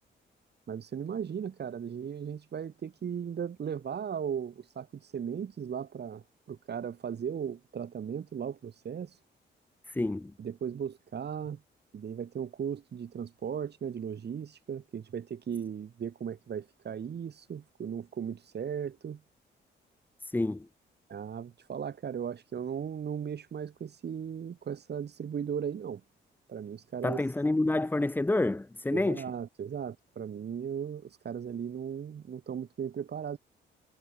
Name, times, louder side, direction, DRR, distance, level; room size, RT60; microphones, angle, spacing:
voice 1, 0.7-9.2 10.4-11.6 11.9-19.2 21.1-26.0 26.5-27.2 28.9-33.4, right 8 dB, 55° right, 3.8 m, -37 dB
voice 2, 9.9-10.3 20.2-20.7 27.0-29.2, left 2 dB, 10° left, 0.6 m, -28 dB
cardioid pair, 80°, 20 cm